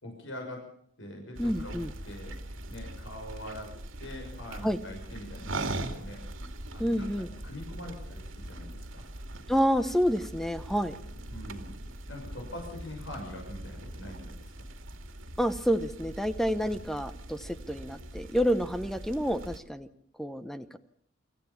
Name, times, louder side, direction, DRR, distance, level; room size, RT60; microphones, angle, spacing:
voice 1, 0.0-0.6 1.0-1.8 2.0-2.3 2.7-3.7 4.0-6.2 6.7-7.1 7.4-9.1 11.3-11.7 12.1-14.5, left 1 dB, 75° left, 1 dB, 6.4 m, -43 dB
sound 1, 1.3-19.6, right 1 dB, 90° right, 2.3 m, -41 dB
voice 2, 1.4-1.9 4.6-4.8 6.8-7.3 9.5-11.0 15.4-19.9 20.2-20.8, equal, ahead, 10 dB, 0.9 m, -28 dB
25.0 x 15.0 x 7.2 m, 0.65 s
head